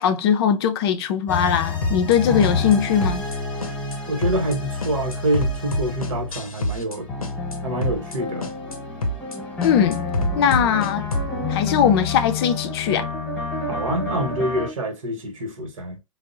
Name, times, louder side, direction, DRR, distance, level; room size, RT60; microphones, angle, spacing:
voice 1, 0.0-3.2 9.6-10.0 10.4-11.1 11.5-13.1, left 8 dB, 45° left, 0.5 m, -20 dB
sound 1, 1.3-6.5 6.9-14.7, left 4 dB, 5° left, 1.1 m, -29 dB
sound 2, 1.8-2.2 2.4-2.8 3.0-3.4 3.6-4.0 4.2-4.6 4.8-7.0 7.2-7.6 7.8-8.2 8.4-8.8 9.0-9.4 9.6-11.3, equal, 85° left, 0.7 m, -26 dB
voice 2, 4.1-7.1 7.6-8.5 13.6-16.0, right 1 dB, 65° right, 1.1 m, -26 dB
3.4 x 2.0 x 2.5 m
figure-of-eight pair, 105°, 18 cm